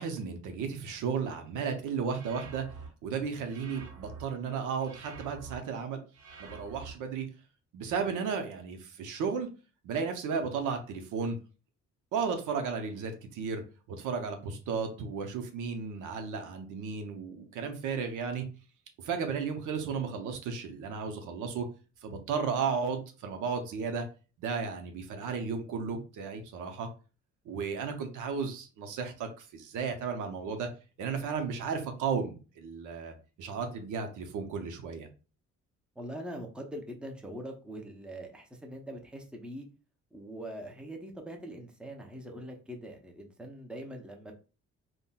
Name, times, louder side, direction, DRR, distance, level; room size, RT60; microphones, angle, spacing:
voice 1, 0.0-2.7 3.0-6.0 6.4-7.3 7.7-9.5 9.8-11.4 12.1-13.6 13.9-18.5 19.0-21.7 22.0-24.1 24.4-26.9 27.5-30.7 31.0-35.1, right 5 dB, 80° right, 6 dB, 0.7 m, -34 dB
sound 1, 2.1-2.9 3.4-4.2 4.8-5.6 6.1-6.9, right 5 dB, 60° right, 1.1 m, -47 dB
voice 2, 36.0-39.7 40.1-44.3, right 1 dB, 5° right, 2 dB, 0.6 m, -42 dB
3.7 x 2.1 x 2.2 m, 0.35 s
cardioid pair, 90°, 30 cm